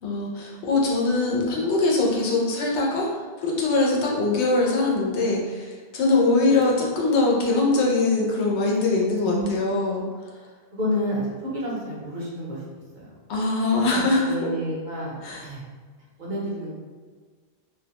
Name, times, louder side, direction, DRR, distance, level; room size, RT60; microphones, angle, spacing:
voice 1, 0.0-3.1 3.4-10.0 13.3-14.5 15.2-15.5, left 3 dB, 80° left, -2 dB, 0.9 m, -22 dB
voice 2, 10.7-12.6 12.9-13.1 13.7-15.6 16.2-16.7, equal, 55° right, -5 dB, 0.7 m, -30 dB
2.4 x 2.1 x 2.7 m, 1.5 s
omnidirectional pair, 1.1 m